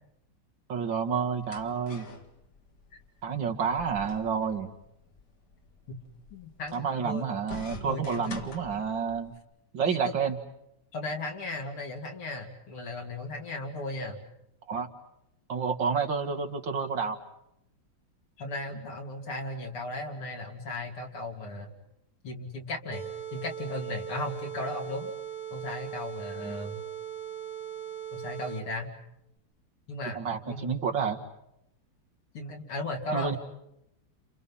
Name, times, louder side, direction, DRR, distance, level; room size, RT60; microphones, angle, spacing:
voice 1, 0.7-2.1 3.2-4.7 6.7-9.3 9.7-10.4 14.7-14.9 15.5-17.2 26.4-26.7 30.0-31.2 33.1-33.4, right 6 dB, 60° right, 3 dB, 2.6 m, -29 dB
sound 1, 0.9-9.4, left 4 dB, 50° left, 2.5 m, -47 dB
voice 2, 6.3-7.2 7.9-8.6 9.8-10.1 10.9-14.2 18.4-21.7 22.2-25.1 25.5-26.8 28.1-28.9 29.9-30.2 30.5-30.8 32.3-33.4, left 2 dB, 80° left, 2 dB, 3.9 m, -36 dB
sound 2, 22.9-28.9, right 10 dB, 30° right, 5.1 m, -39 dB
30.0 x 30.0 x 5.7 m, 0.80 s
omnidirectional pair, 2.4 m